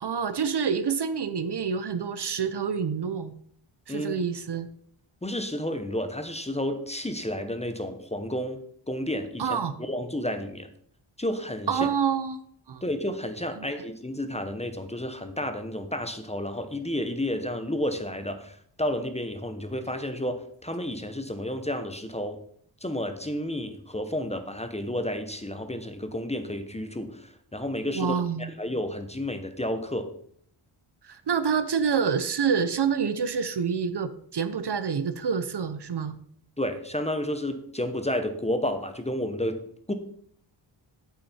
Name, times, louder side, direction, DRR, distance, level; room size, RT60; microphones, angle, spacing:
voice 1, 0.0-3.3 3.9-4.7 9.4-9.7 11.7-12.4 12.7-12.8 13.6-13.7 27.9-28.5 31.0-36.2, right 6 dB, 55° right, 12 dB, 0.8 m, -27 dB
voice 2, 3.9-4.2 5.2-10.7 11.2-11.9 12.8-22.4 22.8-30.1 36.6-39.9, left 1 dB, 15° left, 8 dB, 0.8 m, -31 dB
8.9 x 8.6 x 4.3 m, 0.64 s
wide cardioid pair, 145°, 49 cm